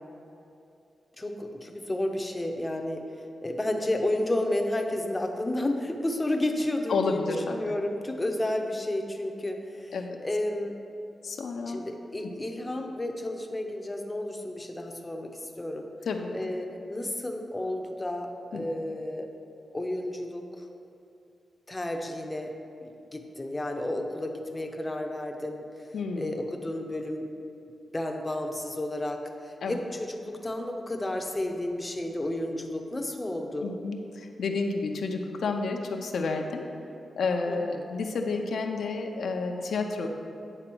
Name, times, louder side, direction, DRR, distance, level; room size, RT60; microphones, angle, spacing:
voice 1, 1.2-10.8 11.7-15.9 16.3-19.3 19.7-20.7 21.7-22.6 22.8-25.9 26.2-27.3 27.9-33.7 37.5-38.0, left 1 dB, 15° left, 3 dB, 0.7 m, -32 dB
voice 2, 6.9-7.5 9.9-10.2 11.2-11.8 16.1-16.4 18.5-18.6 25.9-26.3 29.6-29.8 33.6-36.7 37.2-40.1, left 4 dB, 75° left, 3 dB, 0.6 m, -30 dB
9.0 x 3.9 x 6.1 m, 2.7 s
wide cardioid pair, 115°, 0 cm